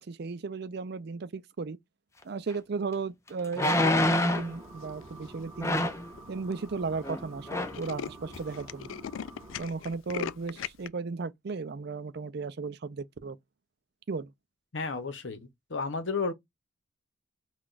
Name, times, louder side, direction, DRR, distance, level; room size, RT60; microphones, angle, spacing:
voice 1, 0.0-1.8 2.2-5.9 6.3-8.9 9.6-13.4 14.1-14.3, right 4 dB, 55° right, 0.4 m, -35 dB
moving a chair out, 2.5-2.6 3.5-4.5 5.6-6.1 7.0-7.2 7.5-7.8 8.3-8.4, left 1 dB, 15° left, 0.5 m, -26 dB
sound 1, 4.3-9.7, right 2 dB, 15° right, 1.4 m, -48 dB
Tools, 4.8-5.2 5.8-5.9 6.2-6.3 6.5-6.7 7.0-7.1 7.4-10.9, left 8 dB, 85° left, 0.3 m, -39 dB
voice 2, 14.7-16.3, left 4 dB, 70° left, 0.8 m, -32 dB
5.7 x 2.4 x 2.5 m
head